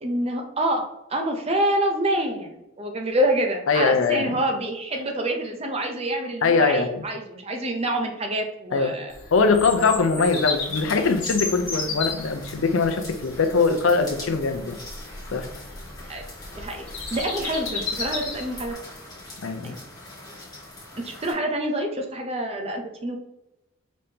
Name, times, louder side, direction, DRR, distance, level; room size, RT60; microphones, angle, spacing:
voice 1, 0.0-9.1 16.1-16.2 16.6-16.8 17.1-18.7 19.6-19.7 21.0-23.2, right 1 dB, 30° right, 3 dB, 0.6 m, -27 dB
voice 2, 3.7-4.3 6.4-7.0 8.7-8.9 9.3-14.8 15.3-15.5 19.4-19.8, left 4 dB, 70° left, 8 dB, 0.5 m, -22 dB
Bird vocalization bird call bird song, 9.1-18.7, left 4 dB, 40° left, 1.6 m, -34 dB
sound 1, 10.2-21.3, left 2 dB, 20° left, 1.6 m, -42 dB
5.1 x 3.5 x 2.8 m, 0.89 s
head